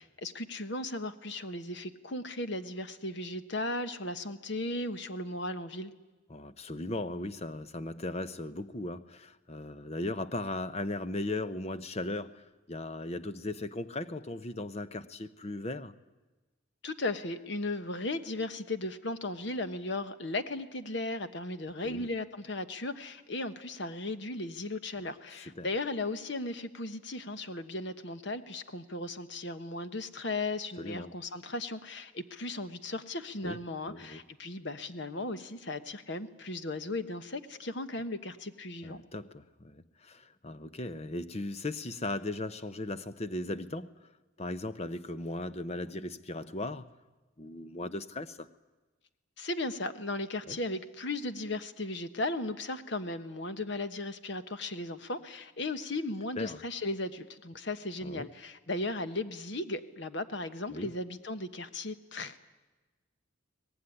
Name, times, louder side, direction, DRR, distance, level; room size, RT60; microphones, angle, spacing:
voice 1, 0.0-5.9 16.8-39.0 49.4-62.4, left 2 dB, 55° left, 1.2 m, -36 dB
voice 2, 6.3-15.9 21.8-22.1 25.3-25.7 30.8-31.1 33.4-33.6 33.9-34.2 38.8-44.1 44.4-46.9 47.4-48.5 50.5-50.6 56.4-56.6 58.0-58.3 60.7-60.9, left 2 dB, 30° left, 0.8 m, -37 dB
23.5 x 18.5 x 9.9 m
head